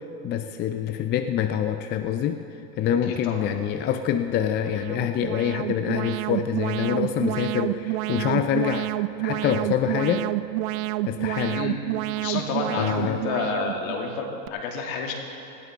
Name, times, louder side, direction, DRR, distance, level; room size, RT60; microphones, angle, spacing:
voice 1, 0.2-2.4 2.8-8.9 9.2-10.3 11.0-11.6 12.8-13.2, left 9 dB, 25° left, 7 dB, 0.4 m, -26 dB
voice 2, 3.1-3.5 11.4-11.8 12.2-15.1, left 5 dB, 60° left, 1 dB, 2.5 m, -30 dB
Alarm, 4.6-14.5, right 18 dB, 60° right, 0.5 m, -29 dB
19.5 x 13.5 x 3.6 m, 2.9 s
hypercardioid pair, 110°, 47 cm